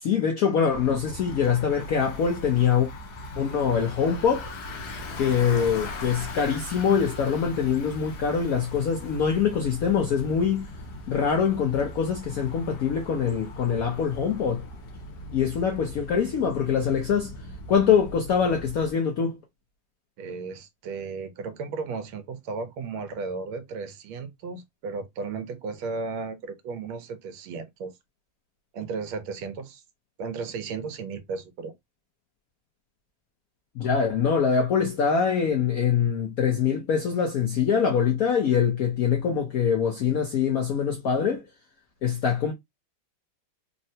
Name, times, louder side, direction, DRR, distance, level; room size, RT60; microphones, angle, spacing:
voice 1, 0.0-2.9 3.4-4.5 5.2-10.7 11.1-14.6 15.3-17.3 17.7-19.4 33.8-41.5 42.0-42.5, left 7 dB, 75° left, 0.8 m, -24 dB
Bicycle, 0.7-18.9, left 1 dB, 60° left, 1.2 m, -39 dB
voice 2, 20.2-27.9 28.7-29.8 30.2-31.7, right 4 dB, 85° right, 1.5 m, -34 dB
3.7 x 2.1 x 2.6 m
omnidirectional pair, 2.2 m